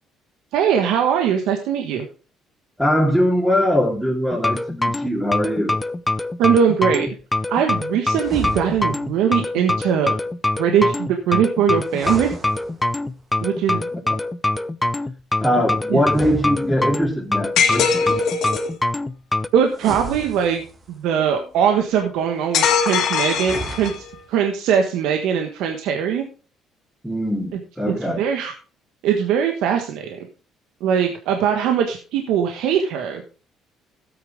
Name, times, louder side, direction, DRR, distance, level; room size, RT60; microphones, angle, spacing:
voice 1, 0.5-2.0 6.4-7.1 7.5-10.1 10.6-12.3 13.4-13.9 15.9-16.0 19.5-20.6 20.9-26.2 28.0-28.5 29.0-30.2 30.8-33.2, right 8 dB, 80° right, 4 dB, 1.4 m, -21 dB
voice 2, 2.8-5.7 13.9-14.0 15.4-18.2 27.0-28.2, equal, ahead, -5 dB, 2.9 m, -21 dB
sound 1, 4.3-19.5, left 2 dB, 15° left, 0.7 m, -24 dB
sound 2, 8.1-9.1 11.8-13.2 16.0-17.2 19.7-21.0 23.3-24.3, right 3 dB, 35° right, 2.2 m, -34 dB
sound 3, 17.6-18.7 22.5-24.1, left 6 dB, 70° left, 2.3 m, -21 dB
13.0 x 8.7 x 3.6 m, 0.37 s
supercardioid pair, 85°, 0 cm